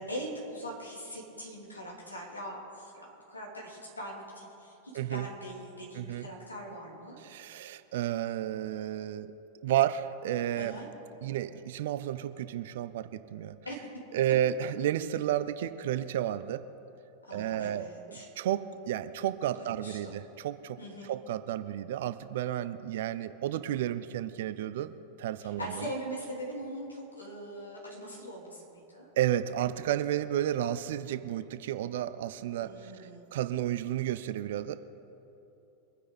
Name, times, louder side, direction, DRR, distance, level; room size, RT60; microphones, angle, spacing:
voice 1, 0.0-7.2 10.5-10.9 13.6-13.9 17.3-18.3 19.6-20.2 20.8-21.1 25.4-29.1 32.6-33.2, equal, 80° left, -3 dB, 3.2 m, -41 dB
voice 2, 4.9-5.3 5.9-6.3 7.2-9.3 9.6-10.8 11.2-13.5 14.1-16.6 17.3-20.8 21.0-24.9 25.2-25.9 29.2-34.8, right 11 dB, 55° right, 13 dB, 0.5 m, -32 dB
24.0 x 9.9 x 4.1 m, 3.0 s
figure-of-eight pair, 90°, 0 cm